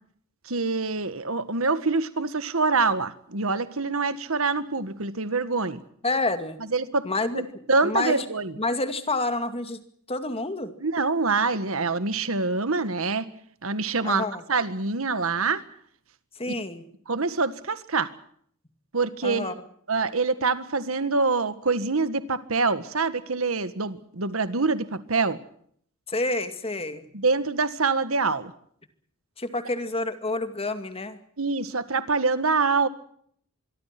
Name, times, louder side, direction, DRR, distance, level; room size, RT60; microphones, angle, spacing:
voice 1, 0.4-5.8 6.7-7.1 7.3-8.5 10.8-13.3 13.6-14.2 14.5-15.6 16.5-16.6 17.1-18.1 18.9-19.5 19.9-25.4 27.1-28.5 31.4-32.9, right 4 dB, 70° right, 13 dB, 1.7 m, -25 dB
voice 2, 6.0-6.6 7.0-8.2 8.6-9.8 10.1-10.7 14.0-14.4 16.4-16.9 19.2-19.5 26.1-27.1 29.4-31.2, left 2 dB, 25° left, 9 dB, 2.3 m, -28 dB
25.5 x 23.5 x 6.0 m, 0.64 s
head